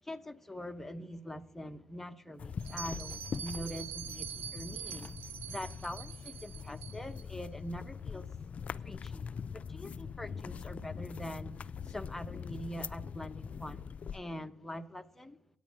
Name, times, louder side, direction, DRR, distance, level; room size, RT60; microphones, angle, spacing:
voice 1, 0.0-8.4 8.8-15.4, equal, 10° left, 0.9 m, -44 dB
sound 1, 2.4-14.2, left 6 dB, 50° left, 0.4 m, -43 dB
Bell, 2.6-7.2, right 8 dB, 90° right, 0.5 m, -44 dB
9.3 x 8.9 x 6.3 m
supercardioid pair, 70°, 3 cm